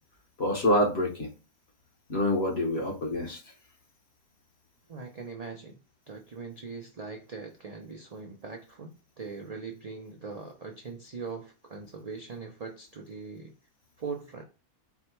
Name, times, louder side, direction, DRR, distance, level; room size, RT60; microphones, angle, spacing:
voice 1, 0.4-1.3 2.1-3.4, left 1 dB, 45° left, 1.2 m, -26 dB
voice 2, 4.9-5.8 6.1-13.5 14.0-14.4, right 4 dB, 60° right, 0.4 m, -41 dB
4.8 x 2.2 x 4.4 m
omnidirectional pair, 1.6 m